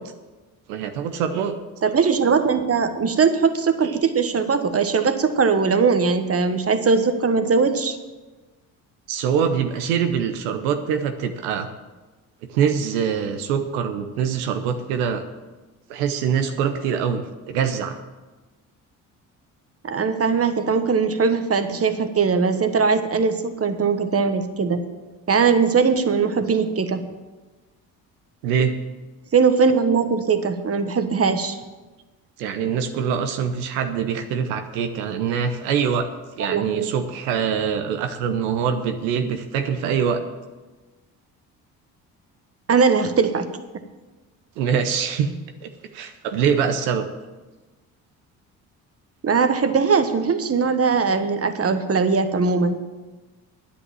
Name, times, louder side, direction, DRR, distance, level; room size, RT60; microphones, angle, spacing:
voice 1, 0.7-1.5 3.8-3.9 9.1-11.7 12.5-15.2 15.9-18.0 28.4-28.7 32.4-36.1 36.4-40.2 44.6-45.3 45.6-47.1, right 7 dB, 85° right, 7 dB, 0.9 m, -24 dB
voice 2, 1.8-8.0 19.9-24.8 25.3-27.0 29.3-31.6 36.4-36.9 42.7-43.5 49.2-52.8, right 5 dB, 35° right, 9 dB, 1.3 m, -20 dB
9.7 x 8.5 x 7.5 m, 1.2 s
hypercardioid pair, 55°, 42 cm